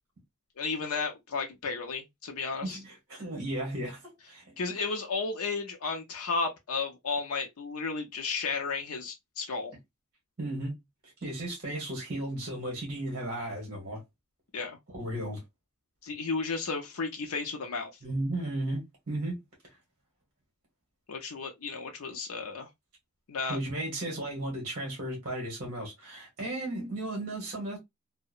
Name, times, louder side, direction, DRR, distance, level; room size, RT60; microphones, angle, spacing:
voice 1, 0.6-2.8 4.6-9.7 14.5-14.8 16.0-17.9 21.1-22.7 23.3-23.6, left 4 dB, 75° left, 0.5 m, -33 dB
voice 2, 2.6-4.0 4.3-4.4 10.4-10.7 11.2-14.0 14.9-15.4 18.0-19.4 23.5-27.8, right 1 dB, 40° right, 1.0 m, -34 dB
2.7 x 2.0 x 2.3 m
head